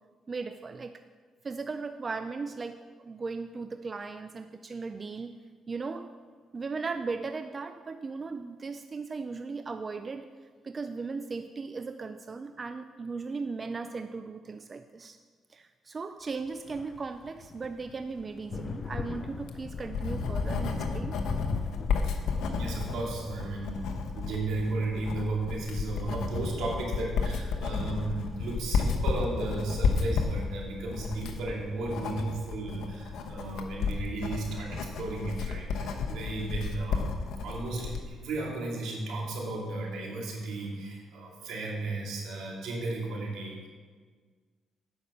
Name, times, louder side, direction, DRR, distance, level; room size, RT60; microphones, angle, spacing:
voice 1, 0.3-1.0 1.4-5.3 5.7-6.1 6.5-10.3 10.6-15.2 15.5-21.1, right 4 dB, 35° right, 9 dB, 0.4 m, -37 dB
sound 1, 16.5-32.5, left 5 dB, 45° left, 0.5 m, -43 dB
Writing, 19.3-38.1, left 5 dB, 80° left, 1.0 m, -32 dB
voice 2, 22.5-23.8 24.1-37.0 37.4-43.7, right 2 dB, 85° right, -2 dB, 2.5 m, -34 dB
9.3 x 6.0 x 6.8 m, 1.5 s
cardioid pair, 90°, 0 cm